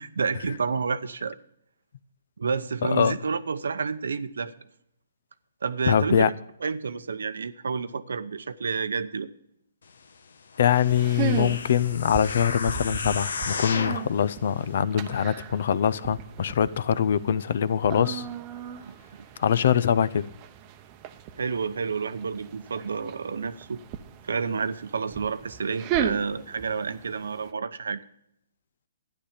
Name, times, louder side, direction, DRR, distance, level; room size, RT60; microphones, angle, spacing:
voice 1, 0.0-1.4 2.4-4.5 5.6-9.3 18.8-18.9 21.4-23.8 24.2-28.0, right 5 dB, 80° right, 0.8 m, -30 dB
voice 2, 5.9-6.3 10.6-18.2 19.4-20.3, left 8 dB, 60° left, 0.6 m, -23 dB
sound 1, 10.5-14.1 14.7-14.8, left 4 dB, 80° left, 1.1 m, -33 dB
sound 2, 10.8-27.5, right 9 dB, 30° right, 0.8 m, -37 dB
12.5 x 10.0 x 5.1 m
hypercardioid pair, 155°, 0 cm